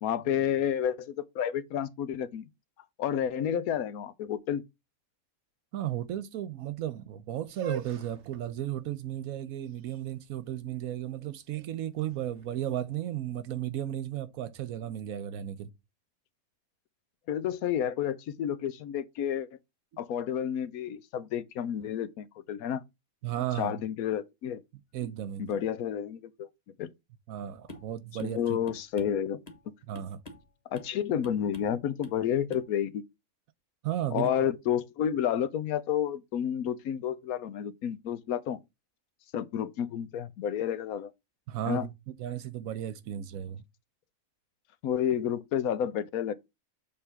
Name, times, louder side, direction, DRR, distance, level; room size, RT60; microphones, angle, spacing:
voice 1, 0.0-2.5 3.0-4.6 17.3-19.5 20.0-22.8 23.6-24.6 25.4-26.5 26.8-26.9 28.2-29.4 30.7-33.0 34.1-38.6 39.3-41.1 41.7-41.9 44.8-46.3, left 9 dB, 80° left, 1.2 m, -30 dB
voice 2, 5.7-15.7 23.2-23.8 24.7-25.6 27.3-28.6 29.9-30.2 33.8-34.3 41.5-41.9 42.2-43.6, right 11 dB, 75° right, 1.1 m, -34 dB
sound 1, 7.4-13.4, right 4 dB, 55° right, 1.1 m, -46 dB
sound 2, 27.7-27.9 28.2-28.4 28.7-29.7 29.9-30.5 30.7-31.0 31.2-31.8 32.0-32.2 32.5-32.7, left 1 dB, 30° left, 1.3 m, -47 dB
7.1 x 3.4 x 5.8 m
omnidirectional pair, 1.5 m